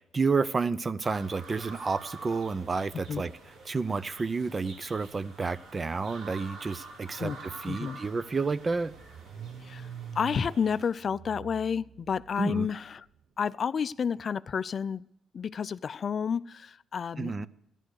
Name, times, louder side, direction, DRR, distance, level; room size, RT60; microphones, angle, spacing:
voice 1, 0.0-3.3 3.7-8.9 12.4-12.7 17.2-17.5, right 4 dB, 30° right, 17 dB, 0.6 m, -30 dB
sound 1, 1.0-10.9, right 3 dB, 75° right, 3.8 m, -48 dB
Car / Engine starting, 7.4-7.5 7.8-13.0, right 8 dB, 60° right, 0.9 m, -46 dB
voice 2, 7.6-8.0 9.6-9.9 10.1-13.1 13.4-15.0 15.3-17.5, left 6 dB, 50° left, 18 dB, 0.4 m, -30 dB
14.0 x 10.5 x 6.6 m, 0.79 s
cardioid pair, 90°, 0 cm